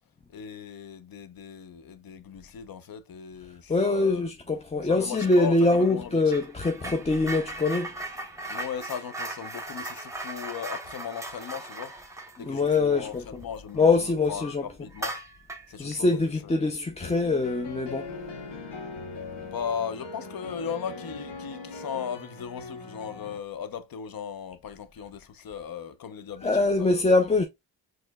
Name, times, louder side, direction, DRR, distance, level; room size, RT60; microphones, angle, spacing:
voice 1, 0.3-4.3 4.8-6.4 8.5-11.9 12.4-15.2 15.7-16.7 19.4-27.0, left 7 dB, 50° left, 0.7 m, -37 dB
voice 2, 3.7-7.9 12.5-13.1 13.8-14.6 15.8-18.1 26.4-27.4, left 3 dB, 15° left, 0.4 m, -23 dB
sound 1, 5.1-5.5 5.7-13.9 14.2-14.4 14.9-15.8, right 2 dB, 5° right, 0.9 m, -38 dB
sound 2, 16.9-23.4, left 3 dB, 70° left, 1.2 m, -40 dB
4.3 x 3.1 x 2.2 m
cardioid pair, 55°, 44 cm